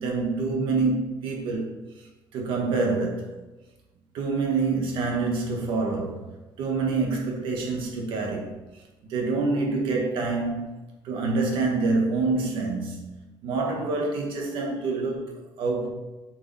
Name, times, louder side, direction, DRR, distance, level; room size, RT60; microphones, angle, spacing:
voice 1, 0.0-1.7 2.3-3.3 4.1-6.3 6.6-8.6 9.1-10.7 11.0-15.9, right 3 dB, 60° right, 1.6 m, -26 dB
7.2 x 5.2 x 3.5 m
cardioid pair, 170°, 10 cm